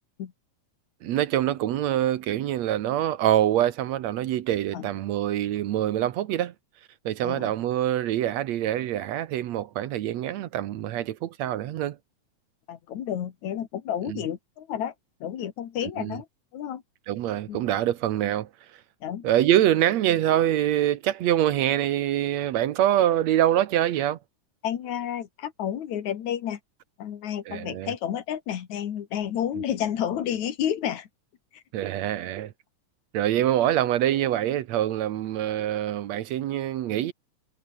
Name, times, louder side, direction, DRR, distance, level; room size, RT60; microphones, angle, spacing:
voice 1, 1.0-6.5 7.1-12.0 14.1-14.2 16.0-16.2 17.1-18.5 19.2-24.2 27.5-27.9 31.7-32.5 33.1-37.1, right 12 dB, 70° right, 2.1 m, -25 dB
voice 2, 12.7-14.9 15.2-16.3 16.5-16.8 17.5-17.6 19.0-19.3 24.6-26.6 27.0-31.1 31.5-31.6, left 10 dB, 70° left, 3.0 m, -31 dB
omnidirectional pair, 3.4 m